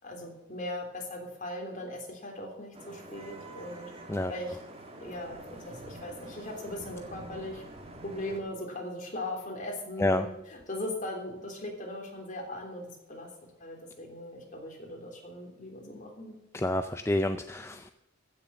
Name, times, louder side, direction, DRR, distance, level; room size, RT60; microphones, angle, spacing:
voice 1, 0.0-3.9 4.3-4.7 5.0-7.6 8.0-13.3 13.6-16.3, left 1 dB, 40° left, 1 dB, 3.4 m, -39 dB
Vehicle horn car horn honking / Traffic noise roadway noise, 2.7-8.4, right 1 dB, 30° right, 2.1 m, -46 dB
voice 2, 16.5-17.9, left 1 dB, 15° left, 9 dB, 0.4 m, -28 dB
15.0 x 7.0 x 7.0 m, 0.97 s
head